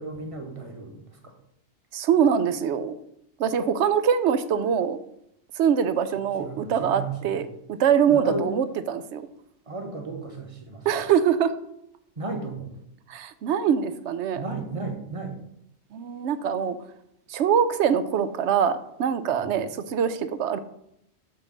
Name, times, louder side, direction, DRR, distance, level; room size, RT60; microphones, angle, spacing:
voice 1, 0.0-1.3 6.4-7.3 8.1-8.5 9.7-10.9 12.2-12.7 14.4-15.4 19.4-19.5, right 3 dB, 30° right, 3 dB, 1.2 m, -34 dB
voice 2, 1.9-3.0 3.4-5.0 5.6-7.4 7.8-9.3 10.8-11.5 13.1-14.4 15.9-16.8 17.3-20.6, right 8 dB, 75° right, 12 dB, 0.9 m, -23 dB
8.1 x 3.2 x 6.3 m, 0.76 s
omnidirectional pair, 1.2 m